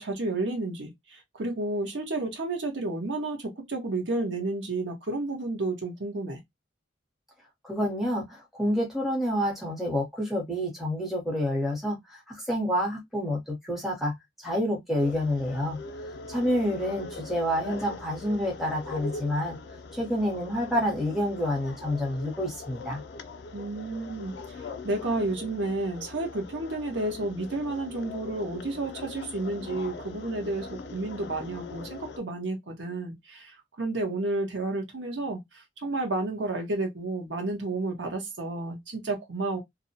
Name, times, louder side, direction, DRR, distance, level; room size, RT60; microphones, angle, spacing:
voice 1, 0.0-6.4 23.5-24.3 24.8-35.4 35.8-39.6, right 2 dB, 85° right, 0.9 m, -31 dB
voice 2, 7.6-15.8 16.3-19.6 19.9-23.0, equal, ahead, 0.8 m, -28 dB
sound 1, 15.0-32.2, left 3 dB, 75° left, 0.4 m, -41 dB
2.5 x 2.1 x 2.7 m
head